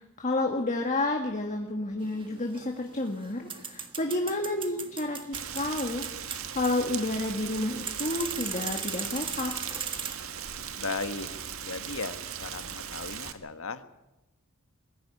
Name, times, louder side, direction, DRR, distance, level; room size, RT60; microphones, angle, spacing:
voice 1, 0.2-6.0 6.5-9.5, left 2 dB, 35° left, 3 dB, 1.9 m, -30 dB
sound 1, 2.0-10.1, right 6 dB, 25° right, 1.6 m, -39 dB
Rain, 5.3-13.3, right 8 dB, 85° right, 1.6 m, -38 dB
voice 2, 10.8-11.3 11.6-13.8, left 3 dB, 70° left, 10 dB, 1.5 m, -36 dB
21.5 x 14.5 x 9.7 m, 0.97 s
head